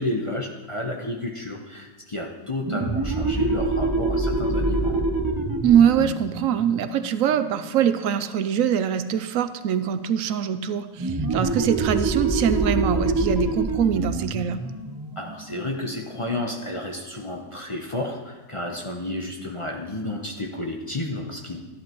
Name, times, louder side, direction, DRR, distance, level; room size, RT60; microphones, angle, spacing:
voice 1, 0.0-5.1 15.2-21.6, left 1 dB, 25° left, 1 dB, 0.8 m, -31 dB
sound 1, 2.6-7.9 11.0-16.3, right 2 dB, 35° right, 0.3 m, -26 dB
voice 2, 5.6-14.6, right 8 dB, 75° right, 11 dB, 1.0 m, -23 dB
13.0 x 11.0 x 3.0 m, 1.2 s
omnidirectional pair, 1.4 m